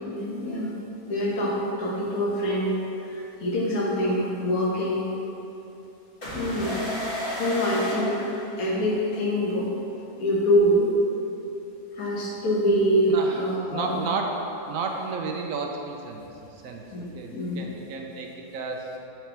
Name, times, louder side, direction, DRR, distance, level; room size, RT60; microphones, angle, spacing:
voice 1, 0.1-0.7 1.1-2.7 3.1-5.0 6.3-6.7 7.4-8.3 8.6-9.7 10.2-10.9 12.0-14.0 16.9-17.6, equal, 60° left, -3 dB, 1.6 m, -25 dB
sound 1, 6.2-9.0, left 1 dB, 35° left, 1.7 m, -32 dB
voice 2, 13.1-13.4 13.7-16.3 16.5-18.9, right 4 dB, 65° right, 2 dB, 1.0 m, -32 dB
7.6 x 6.0 x 3.4 m, 2.9 s
omnidirectional pair, 1.7 m